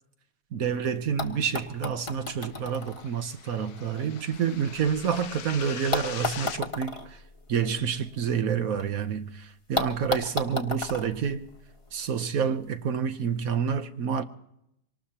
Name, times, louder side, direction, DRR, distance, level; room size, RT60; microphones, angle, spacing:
voice 1, 0.5-7.2 7.5-11.5 11.9-14.2, right 7 dB, 65° right, 1.3 m, -28 dB
sound 1, 0.7-0.8 1.2-5.3 5.9-8.9 9.2-9.3 9.8-12.1 13.1-13.2, left 3 dB, 20° left, 1.2 m, -35 dB
sound 2, 2.1-6.6, left 9 dB, 70° left, 1.3 m, -42 dB
24.5 x 19.5 x 2.9 m
omnidirectional pair, 1.7 m